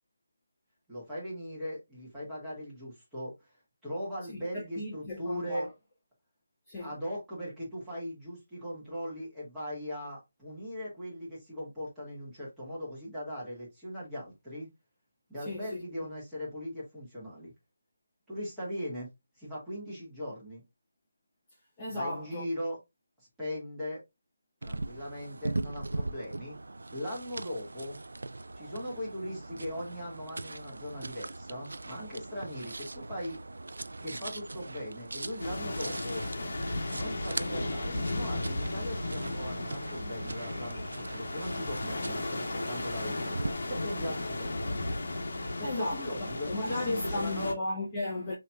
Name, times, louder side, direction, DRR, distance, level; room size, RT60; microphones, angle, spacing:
voice 1, 0.9-3.5 3.8-5.7 6.8-14.7 15.3-17.5 18.3-19.1 19.4-20.6 21.9-22.8 23.4-24.0 24.6-26.6 26.9-28.0 28.5-33.4 34.0-36.3 36.9-43.4 43.7-44.5 45.6-47.5, equal, 5° right, 1.6 m, -39 dB
voice 2, 4.3-5.7 6.7-6.9 15.4-16.1 21.8-22.5 45.6-46.1 46.5-48.3, left 2 dB, 15° left, 0.7 m, -35 dB
sound 1, 24.6-43.5, right 2 dB, 80° right, 0.3 m, -40 dB
sound 2, 35.4-47.5, left 2 dB, 55° left, 1.1 m, -35 dB
5.5 x 2.9 x 2.2 m
figure-of-eight pair, 175°, 0 cm